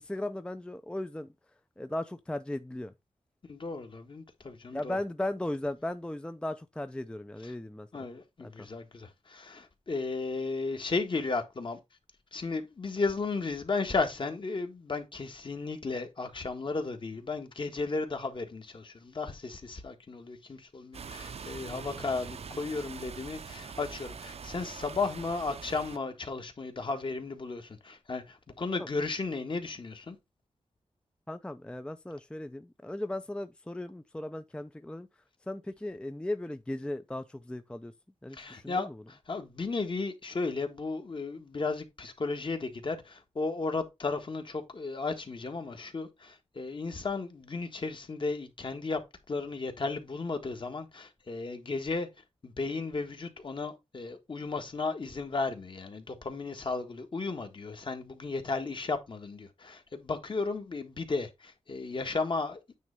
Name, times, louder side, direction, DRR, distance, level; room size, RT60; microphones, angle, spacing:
voice 1, 0.0-1.3 1.8-2.9 4.7-8.1 8.4-8.7 28.8-28.9 31.3-35.1 35.5-37.9 38.2-39.0, left 1 dB, 10° left, 0.5 m, -37 dB
voice 2, 3.5-5.0 7.9-11.8 12.3-30.2 38.3-49.0 49.3-52.1 52.4-62.6, left 3 dB, 45° left, 1.6 m, -34 dB
sound 1, 20.9-26.0, right 6 dB, 60° right, 0.7 m, -43 dB
9.2 x 3.3 x 5.2 m
wide cardioid pair, 105°, 12 cm